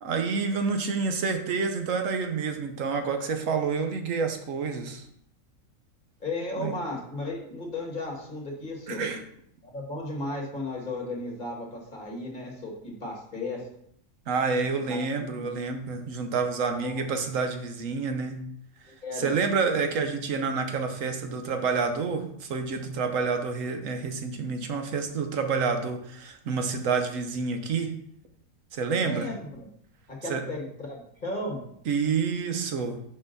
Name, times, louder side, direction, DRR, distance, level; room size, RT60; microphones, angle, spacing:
voice 1, 0.0-5.0 6.6-6.7 8.9-9.2 14.3-18.4 19.2-27.9 28.7-29.3 30.3-30.4 31.9-33.0, right 5 dB, 65° right, 6 dB, 1.1 m, -28 dB
voice 2, 6.2-9.0 9.6-13.6 14.8-15.6 16.6-17.0 18.9-19.3 29.0-29.7 30.1-31.6, left 2 dB, 35° left, -1 dB, 1.6 m, -35 dB
5.9 x 5.1 x 3.9 m, 0.68 s
omnidirectional pair, 1.5 m